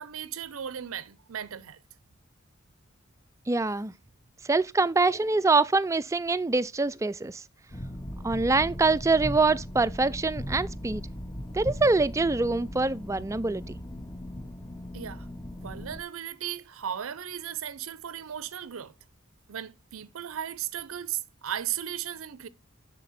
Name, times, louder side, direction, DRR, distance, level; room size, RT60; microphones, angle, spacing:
voice 1, 0.0-1.8 14.9-15.3 15.6-18.9 19.5-22.5, right 10 dB, 80° right, 0.6 m, -36 dB
voice 2, 3.5-3.9 4.4-7.4 8.2-11.1 11.5-13.8, right 3 dB, 15° right, 0.4 m, -25 dB
sound 1, 7.7-16.0, equal, 15° left, 0.8 m, -38 dB
7.4 x 6.7 x 4.1 m
head